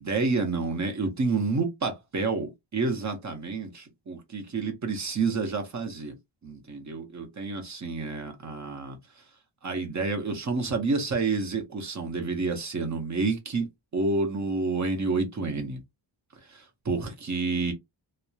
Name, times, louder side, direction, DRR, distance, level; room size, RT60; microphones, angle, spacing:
voice 1, 0.0-6.2 6.4-9.0 9.6-13.7 13.9-15.8 16.5-17.7, right 3 dB, 35° right, 0.8 m, -29 dB
2.8 x 2.1 x 2.3 m
wide cardioid pair, 150°, 46 cm